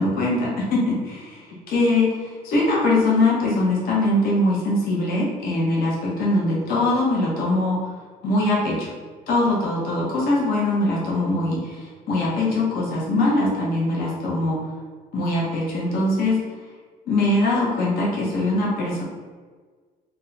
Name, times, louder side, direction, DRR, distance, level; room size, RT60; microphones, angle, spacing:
voice 1, 0.0-1.4 1.7-7.9 8.2-8.9 9.3-14.6 15.1-16.4 17.1-19.0, left 2 dB, 60° left, -4 dB, 0.9 m, -22 dB
2.6 x 2.2 x 3.9 m, 1.5 s
cardioid pair, 110°, 17 cm